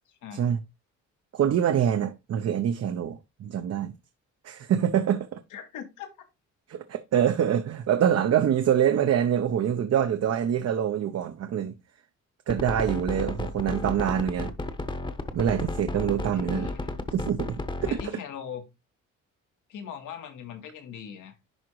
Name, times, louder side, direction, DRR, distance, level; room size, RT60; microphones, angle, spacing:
voice 1, 0.1-0.5 5.5-6.1 16.3-17.0 17.9-18.6 19.7-21.4, left 8 dB, 85° left, 1.7 m, -40 dB
voice 2, 1.3-3.9 4.4-5.4 6.7-11.7 12.5-14.5 15.3-16.7 17.1-18.0, right 9 dB, 55° right, 0.8 m, -25 dB
sound 1, 12.5-18.1, left 2 dB, 15° left, 0.9 m, -32 dB
10.5 x 3.7 x 3.1 m
cardioid pair, 90°, 30 cm